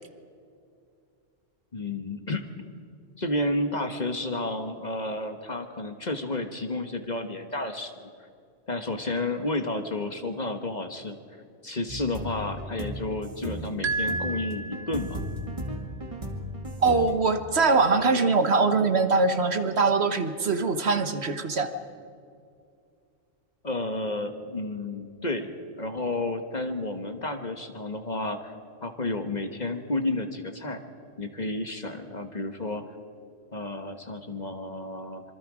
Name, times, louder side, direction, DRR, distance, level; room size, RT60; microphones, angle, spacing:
voice 1, 1.7-2.5 3.2-7.9 8.7-11.2 11.6-15.2 23.6-28.5 28.8-30.8 31.2-32.8 33.5-35.2, left 2 dB, 35° left, 6 dB, 1.4 m, -31 dB
sound 1, 11.9-17.2, equal, 25° right, 2.1 m, -36 dB
sound 2, 13.8-15.4, right 3 dB, 75° right, 1.7 m, -31 dB
voice 2, 16.8-21.7, right 4 dB, 55° right, 9 dB, 1.4 m, -22 dB
26.0 x 23.5 x 5.0 m, 2.3 s
omnidirectional pair, 1.3 m